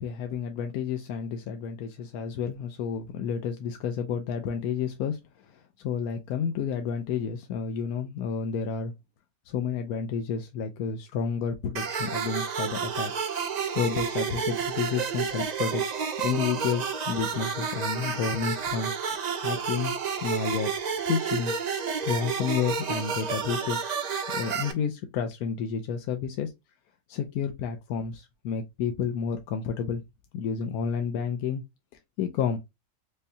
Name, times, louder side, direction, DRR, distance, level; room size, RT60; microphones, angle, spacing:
voice 1, 0.0-8.9 9.5-13.2 13.7-15.8 16.2-18.9 19.4-20.7 21.1-21.5 22.1-23.8 24.3-26.5 27.1-30.0 30.3-31.6 32.2-32.6, left 7 dB, 85° left, 1.1 m, -30 dB
sound 1, 11.8-24.7, right 6 dB, 70° right, 0.4 m, -30 dB
5.2 x 2.2 x 2.6 m
omnidirectional pair, 1.5 m